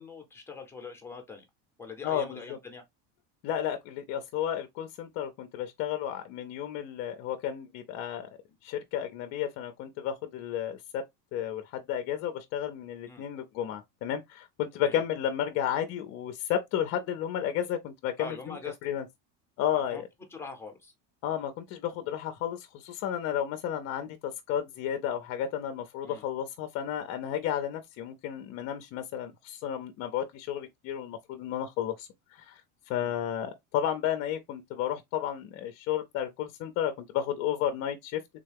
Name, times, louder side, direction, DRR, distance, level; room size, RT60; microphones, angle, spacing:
voice 1, 0.0-1.4 1.8-2.8 13.1-13.2 14.7-15.0 18.2-18.8 19.7-20.0 20.3-20.9 26.0-26.2, left 4 dB, 5° left, 0.7 m, -43 dB
voice 2, 2.0-2.4 3.4-8.3 8.6-11.0 11.3-18.6 18.8-19.0 19.6-20.1 21.2-32.6 32.9-38.2, left 10 dB, 40° left, 0.5 m, -32 dB
3.6 x 2.2 x 3.3 m
cardioid pair, 150°, 39 cm